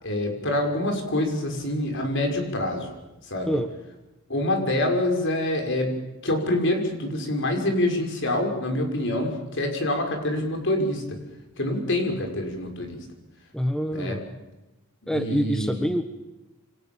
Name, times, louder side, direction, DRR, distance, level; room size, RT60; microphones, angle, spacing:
voice 1, 0.0-3.0 3.3-3.6 4.3-5.9 6.2-11.2 11.6-13.0 13.9-14.2 15.0-15.8, left 1 dB, 55° left, 3 dB, 6.1 m, -26 dB
voice 2, 13.5-14.4 15.1-16.0, equal, 5° left, 7 dB, 1.2 m, -26 dB
28.0 x 25.5 x 7.3 m, 1.0 s
head